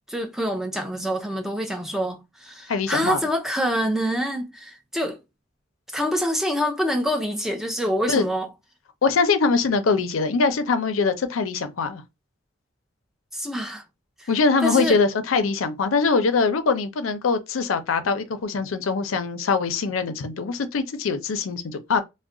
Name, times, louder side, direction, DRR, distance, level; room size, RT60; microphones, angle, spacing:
voice 1, 0.0-5.2 5.9-8.5 13.3-13.8 14.2-14.3 14.6-15.0, equal, ahead, 0.4 m, -26 dB
voice 2, 2.7-3.2 8.1-8.3 9.0-12.0 14.3-22.0, left 4 dB, 90° left, 0.5 m, -23 dB
2.3 x 2.1 x 3.7 m
head